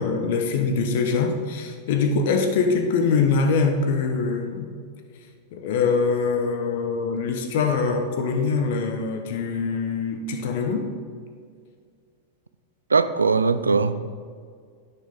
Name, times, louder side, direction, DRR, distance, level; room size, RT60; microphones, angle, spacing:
voice 1, 0.0-4.7 5.5-10.9, left 4 dB, 50° left, 5 dB, 1.0 m, -23 dB
voice 2, 12.9-14.2, right 4 dB, 75° right, 13 dB, 0.4 m, -21 dB
10.5 x 9.3 x 3.7 m, 2.1 s
figure-of-eight pair, 90°, 0 cm